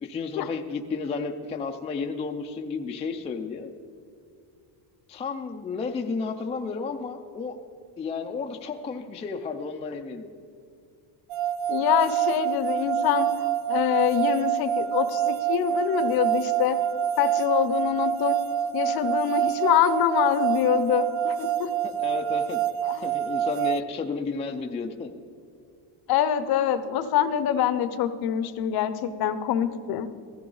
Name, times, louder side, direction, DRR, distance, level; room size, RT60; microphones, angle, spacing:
voice 1, 0.0-3.7 5.1-7.6 8.0-10.3 21.8-22.6 23.0-25.1, left 4 dB, 15° left, 3 dB, 0.3 m, -32 dB
sound 1, 11.3-23.8, right 10 dB, 85° right, 0.6 m, -26 dB
voice 2, 11.7-16.8 17.2-18.4 18.7-21.7 22.8-23.1 26.1-30.1, left 10 dB, 50° left, 12 dB, 0.7 m, -25 dB
15.5 x 14.5 x 3.9 m, 2.5 s
cardioid pair, 165°, 46 cm